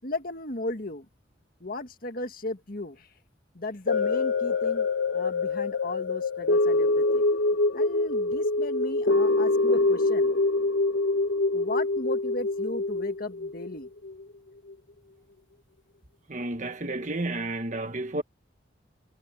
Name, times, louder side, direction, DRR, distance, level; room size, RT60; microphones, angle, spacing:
voice 1, 0.0-1.1 1.6-3.1 3.5-4.9 5.1-10.3 11.5-13.9, left 2 dB, 50° left, 1.8 m, -36 dB
sound 1, 3.9-14.2 14.7-14.8, left 3 dB, 85° left, 1.6 m, -25 dB
voice 2, 16.3-18.2, right 2 dB, 40° right, 1.4 m, -31 dB
head